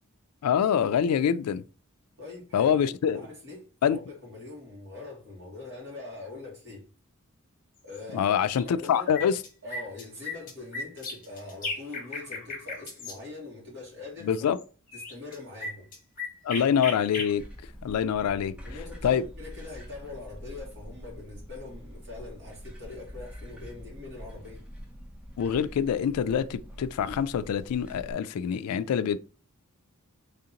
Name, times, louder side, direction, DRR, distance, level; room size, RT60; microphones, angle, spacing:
voice 1, 0.4-1.6 2.5-3.2 3.8-4.0 8.1-9.4 14.2-14.6 16.4-17.4 17.8-18.5 19.0-19.2 25.4-29.2, left 8 dB, 85° left, 0.3 m, -25 dB
voice 2, 2.2-2.8 3.1-6.9 7.8-8.4 8.6-9.2 9.6-14.3 14.9-15.9 16.5-16.7 18.6-24.6, left 3 dB, 55° right, 2.2 m, -43 dB
sound 1, 7.9-8.0 8.4-8.9 9.1-13.2 14.6-14.7 14.9-17.3, left 3 dB, 40° left, 1.2 m, -36 dB
sound 2, 17.3-28.1, equal, 5° right, 0.6 m, -45 dB
3.7 x 3.4 x 2.8 m
head